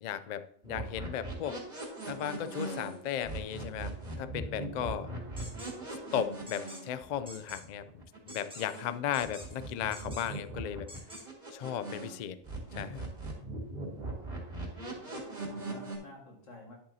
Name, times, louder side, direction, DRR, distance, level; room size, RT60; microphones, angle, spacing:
voice 1, 0.0-1.6 2.1-5.1 6.1-10.9 11.5-12.4 12.7-13.0, left 9 dB, 65° left, 13 dB, 0.4 m, -36 dB
sound 1, 0.6-8.9 9.2-12.2 12.4-16.0, right 2 dB, 40° right, 2.2 m, -40 dB
sound 2, 5.4-5.7 6.5-6.8 7.3-7.6 8.3-8.8 9.1-9.6 9.9-10.4 10.9-11.2, equal, 5° right, 1.5 m, -47 dB
voice 2, 14.7-16.8, left 1 dB, 90° left, 0 dB, 2.2 m, -52 dB
10.5 x 7.3 x 2.8 m, 0.63 s
omnidirectional pair, 1.3 m